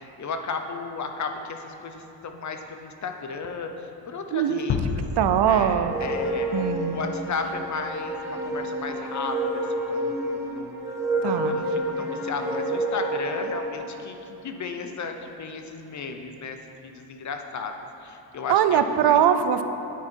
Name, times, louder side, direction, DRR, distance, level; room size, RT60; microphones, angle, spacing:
voice 1, 0.0-3.7 4.1-4.8 5.2-6.5 6.9-10.8 11.2-16.6 16.8-17.7 18.0-19.2, left 4 dB, 45° left, 5 dB, 0.8 m, -34 dB
voice 2, 4.3-4.7 5.2-5.9 6.5-7.0 11.2-11.6 18.5-19.6, right 9 dB, 75° right, 10 dB, 0.7 m, -21 dB
sound 1, 4.7-7.1, left 5 dB, 85° left, 0.8 m, -30 dB
sound 2, 5.7-13.8, right 1 dB, 5° right, 1.2 m, -29 dB
9.6 x 9.3 x 4.5 m, 2.9 s
wide cardioid pair, 160°, 40 cm